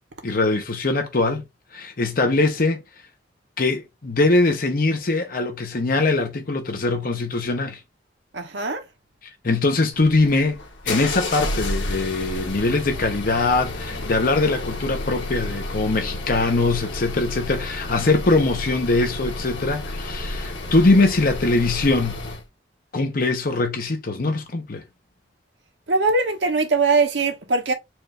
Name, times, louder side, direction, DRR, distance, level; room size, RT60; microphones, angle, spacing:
voice 1, 0.2-1.4 1.7-2.8 3.6-7.8 9.4-10.6 10.8-22.2 22.9-24.8, left 2 dB, 50° left, 0.8 m, -22 dB
voice 2, 8.3-8.8 25.9-27.7, right 3 dB, 70° right, 1.1 m, -21 dB
sound 1, 9.9-22.4, left 2 dB, 90° left, 1.3 m, -31 dB
4.4 x 2.6 x 3.2 m
head